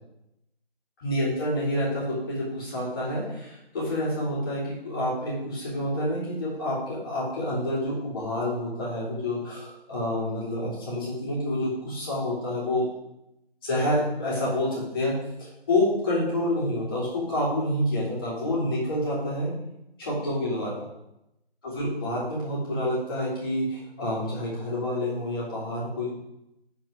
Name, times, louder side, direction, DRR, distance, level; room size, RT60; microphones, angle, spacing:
voice 1, 1.0-12.8 13.6-15.1 15.4-19.5 20.0-20.7 21.6-26.1, left 1 dB, 20° left, -7 dB, 2.8 m, -28 dB
11.0 x 4.7 x 5.1 m, 0.86 s
figure-of-eight pair, 160°, 30 cm